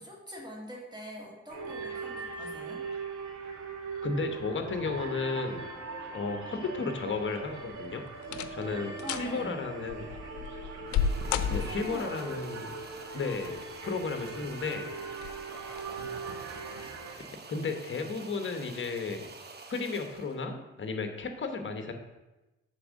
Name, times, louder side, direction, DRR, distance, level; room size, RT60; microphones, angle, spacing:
voice 1, 0.0-2.8 9.0-9.6 11.6-12.4 14.3-14.5, equal, 15° right, -2 dB, 2.4 m, -43 dB
sound 1, 1.5-17.2, right 4 dB, 70° right, 1.5 m, -40 dB
voice 2, 4.0-5.7 6.1-8.0 8.5-10.1 11.5-12.7 13.1-14.9 17.5-19.3 19.7-21.9, left 4 dB, 40° left, 6 dB, 1.2 m, -34 dB
sound 2, 7.3-7.7 8.2-8.7 9.0-9.3 9.9-12.1 13.3-13.9 14.3-14.4 15.1-15.4 15.7-15.8, left 7 dB, 75° left, 0.6 m, -32 dB
sound 3, 10.9-20.4, right 4 dB, 35° right, 0.9 m, -48 dB
7.7 x 3.6 x 6.4 m, 1.0 s
cardioid pair, 90°, 30 cm